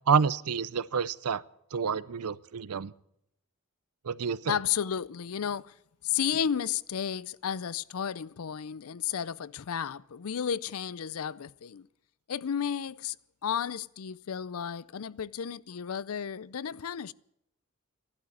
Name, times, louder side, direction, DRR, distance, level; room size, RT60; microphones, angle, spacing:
voice 1, 0.1-1.4 1.7-2.9 4.1-4.5, right 6 dB, 85° right, 0.6 m, -28 dB
voice 2, 4.5-5.7 6.0-11.9 12.3-13.2 13.4-17.1, left 8 dB, 75° left, 0.5 m, -33 dB
14.0 x 11.5 x 8.6 m
head